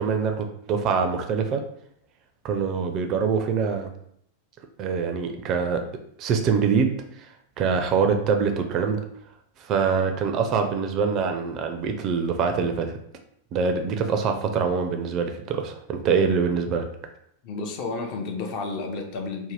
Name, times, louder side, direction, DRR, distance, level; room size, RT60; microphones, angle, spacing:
voice 1, 0.0-1.6 2.4-3.9 4.8-5.8 6.2-7.3 7.6-9.0 9.6-13.0 13.5-16.9, right 5 dB, 35° right, 5 dB, 0.4 m, -24 dB
voice 2, 17.4-19.5, left 3 dB, 45° left, 3 dB, 0.5 m, -31 dB
2.7 x 2.1 x 3.2 m, 0.69 s
figure-of-eight pair, 90°, 0 cm